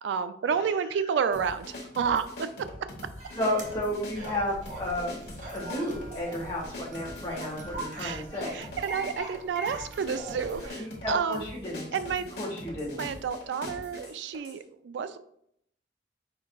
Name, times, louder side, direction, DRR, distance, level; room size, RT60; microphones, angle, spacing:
voice 1, 0.0-2.5 8.0-8.2 8.5-11.4 11.9-12.3 13.0-15.2, right 6 dB, 85° right, 12 dB, 0.3 m, -30 dB
sound 1, 1.3-14.6, left 1 dB, 70° left, 1.2 m, -43 dB
sound 2, 3.2-10.7, right 1 dB, 40° right, 0.9 m, -42 dB
voice 2, 3.3-8.6 10.6-11.9 12.4-13.0, left 1 dB, 25° left, -5 dB, 1.8 m, -32 dB
5.0 x 4.3 x 2.3 m, 0.70 s
head